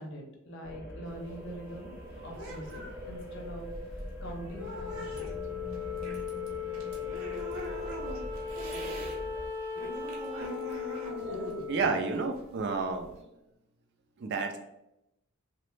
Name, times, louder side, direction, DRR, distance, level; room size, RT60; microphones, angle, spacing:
voice 1, 0.0-1.9 2.2-3.7 3.9-5.5, right 1 dB, 55° left, 1 dB, 0.6 m, -44 dB
sound 1, 0.6-9.5, equal, 5° right, 0.6 m, -43 dB
sound 2, 1.1-9.2 9.5-13.2, right 1 dB, 70° right, 0.7 m, -43 dB
Wind instrument woodwind instrument, 4.6-13.1, left 7 dB, 25° left, 0.8 m, -38 dB
voice 2, 11.7-13.1 14.2-14.6, right 4 dB, 50° right, 5 dB, 0.3 m, -30 dB
3.0 x 2.0 x 3.1 m, 0.86 s
head